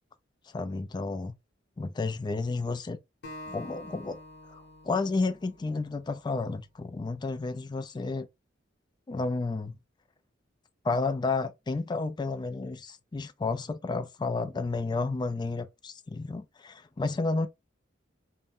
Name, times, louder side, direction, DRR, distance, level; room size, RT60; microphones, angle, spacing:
voice 1, 0.5-1.3 1.8-3.0 3.5-4.2 4.5-8.3 9.1-9.7 10.8-17.5, left 3 dB, 25° left, 0.3 m, -31 dB
Acoustic guitar, 3.2-6.5, left 1 dB, 60° left, 0.9 m, -47 dB
2.6 x 2.1 x 3.5 m
head